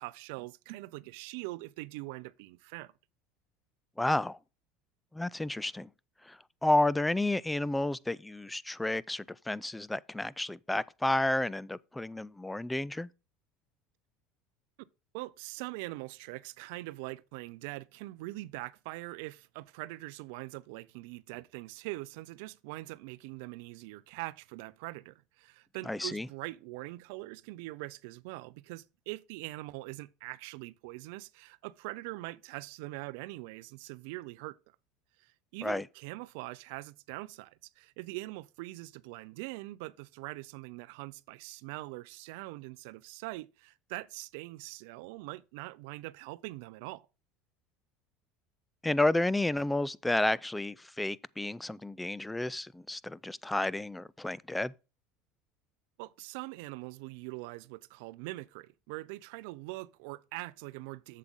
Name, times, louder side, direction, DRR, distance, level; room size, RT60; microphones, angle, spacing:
voice 1, 0.0-2.9 15.1-34.6 35.2-47.1 56.0-61.2, right 20 dB, 75° right, 0.4 m, -43 dB
voice 2, 4.0-4.4 5.1-5.9 6.3-13.1 25.9-26.3 35.6-35.8 48.8-54.7, left 2 dB, 5° left, 0.4 m, -31 dB
7.7 x 7.4 x 3.6 m
supercardioid pair, 110°, 0 cm